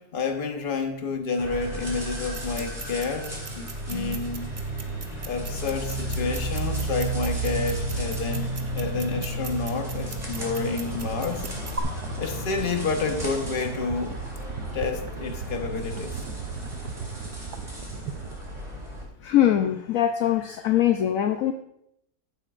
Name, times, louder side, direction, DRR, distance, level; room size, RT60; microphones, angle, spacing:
voice 1, 0.0-4.5 5.2-8.5 8.7-11.5 12.2-14.2 14.7-16.2, left 4 dB, 35° left, 4 dB, 1.2 m, -29 dB
sound 1, 1.4-19.0, right 1 dB, 25° right, 2.7 m, -33 dB
sound 2, 2.3-11.8, right 4 dB, 45° right, 0.4 m, -41 dB
sound 3, 7.2-18.6, right 7 dB, 80° right, 1.2 m, -39 dB
voice 2, 19.2-21.5, left 11 dB, 65° left, 7 dB, 0.9 m, -22 dB
15.0 x 8.3 x 2.5 m, 0.78 s
omnidirectional pair, 1.7 m